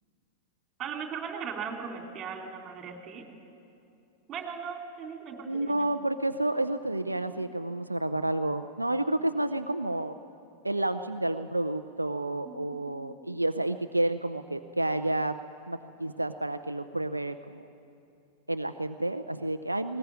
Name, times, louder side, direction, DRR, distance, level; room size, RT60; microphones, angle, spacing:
voice 1, 0.8-3.2 4.3-5.9 12.4-13.2, right 6 dB, 30° right, 3 dB, 3.6 m, -38 dB
voice 2, 5.5-10.2 10.6-15.4 15.7-17.6 18.5-20.0, right 1 dB, 85° right, 10 dB, 0.6 m, -30 dB
20.5 x 19.0 x 9.8 m, 2.6 s
figure-of-eight pair, 90°, 0 cm